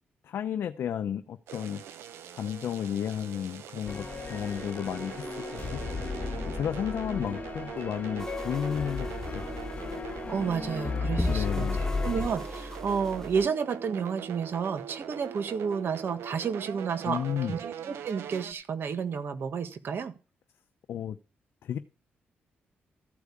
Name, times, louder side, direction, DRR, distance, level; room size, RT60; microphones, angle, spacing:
voice 1, 0.2-1.8 2.3-5.8 6.5-9.5 11.2-11.8 17.1-17.6 20.9-21.2 21.6-21.8, left 9 dB, 75° left, 7 dB, 0.7 m, -33 dB
sound 1, 1.5-18.5, right 9 dB, 90° right, 0.9 m, -42 dB
sound 2, 3.9-12.3, left 4 dB, 40° left, 1.4 m, -34 dB
sound 3, 8.2-13.5, left 1 dB, 10° left, 0.9 m, -38 dB
voice 2, 10.1-11.7 12.0-17.2 17.5-20.1, right 6 dB, 60° right, 10 dB, 1.5 m, -31 dB
14.0 x 4.7 x 8.4 m, 0.34 s
cardioid pair, 80°, 4 cm